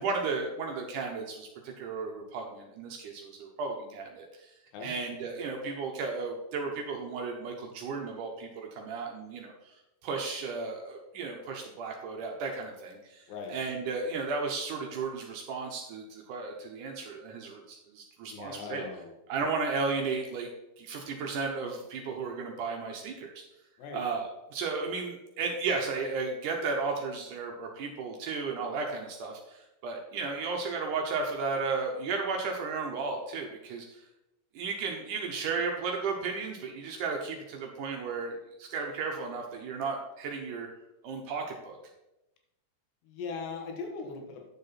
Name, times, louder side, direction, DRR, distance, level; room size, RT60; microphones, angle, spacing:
voice 1, 0.0-4.5 4.8-9.5 10.0-13.2 13.5-18.8 19.3-20.5 20.8-23.4 23.9-33.9 34.6-40.7 41.0-41.8, right 4 dB, 75° right, 1 dB, 1.8 m, -34 dB
voice 2, 18.3-19.1 23.8-24.0 43.0-44.4, left 5 dB, 85° left, 2 dB, 3.5 m, -39 dB
9.7 x 6.8 x 4.2 m, 0.92 s
omnidirectional pair, 4.8 m